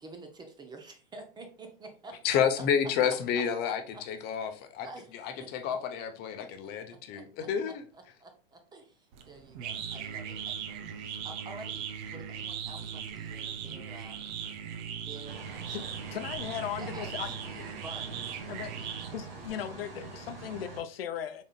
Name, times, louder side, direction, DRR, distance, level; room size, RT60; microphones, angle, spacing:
voice 1, 0.0-2.4 3.6-4.0 4.8-5.1 5.4-5.8 6.3-8.3 8.7-8.9 9.3-10.3 10.7-10.8 11.2-14.2 15.1-15.4 15.8-15.9 16.8-18.6, right 2 dB, 15° right, 0.7 m, -49 dB
voice 2, 2.2-3.8 4.1-4.9 5.1-7.8, left 8 dB, 35° left, 0.7 m, -30 dB
sound 1, 9.1-19.5, right 8 dB, 50° right, 0.7 m, -39 dB
sound 2, 15.3-20.8, right 3 dB, 80° right, 1.6 m, -45 dB
voice 3, 15.7-17.3 17.6-17.8 18.5-18.9 19.1-21.4, left 10 dB, 75° left, 0.6 m, -38 dB
4.0 x 3.6 x 2.4 m
hypercardioid pair, 115°, 29 cm